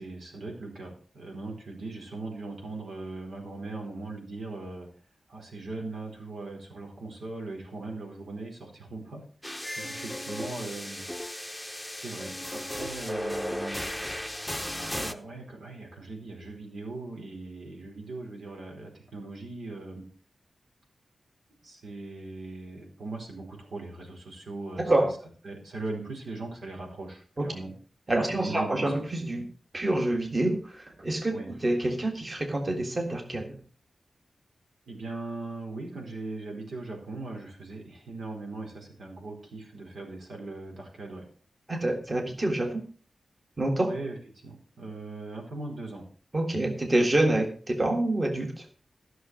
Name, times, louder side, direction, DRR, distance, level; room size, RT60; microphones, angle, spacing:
voice 1, 0.0-4.9 5.3-11.0 11.9-13.8 14.9-20.0 21.6-25.1 25.4-27.7 28.4-28.9 31.3-31.5 34.9-41.3 43.8-44.2 44.4-46.0, right 3 dB, 85° right, 1 dB, 4.5 m, -39 dB
sound 1, 9.4-15.1, equal, ahead, 0.8 m, -35 dB
voice 2, 24.8-25.1 27.4-27.5 28.1-29.5 29.7-33.6 41.7-42.8 43.6-43.9 46.3-48.7, right 1 dB, 30° right, 4 dB, 1.8 m, -27 dB
14.5 x 6.4 x 6.3 m, 0.42 s
wide cardioid pair, 125°, 0 cm